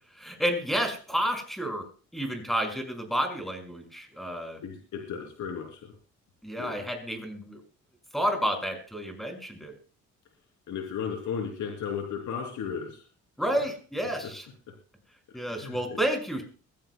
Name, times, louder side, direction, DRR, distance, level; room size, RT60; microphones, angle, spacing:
voice 1, 0.1-4.6 6.4-7.6 8.1-9.7 13.4-14.5 15.3-16.4, equal, ahead, 4 dB, 5.4 m, -30 dB
voice 2, 4.6-5.9 6.6-6.8 10.7-13.0 15.5-16.0, left 7 dB, 75° left, 2 dB, 3.1 m, -35 dB
22.5 x 15.5 x 2.2 m, 0.38 s
cardioid pair, 90°, 30 cm